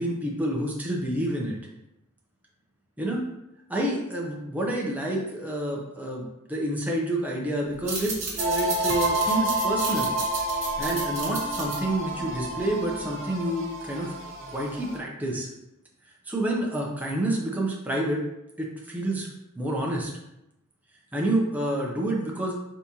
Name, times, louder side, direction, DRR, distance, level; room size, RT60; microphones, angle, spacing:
voice 1, 0.0-1.6 3.0-3.3 3.7-10.1 10.8-14.1 14.5-15.5 16.3-18.2 18.6-19.3 19.5-20.1 21.1-22.5, right 1 dB, 10° right, -2 dB, 0.6 m, -28 dB
sound 1, 7.7-12.9, right 3 dB, 35° right, 1.3 m, -34 dB
sound 2, 8.4-15.0, right 1 dB, 65° right, 0.9 m, -29 dB
4.2 x 3.5 x 2.8 m, 0.87 s
head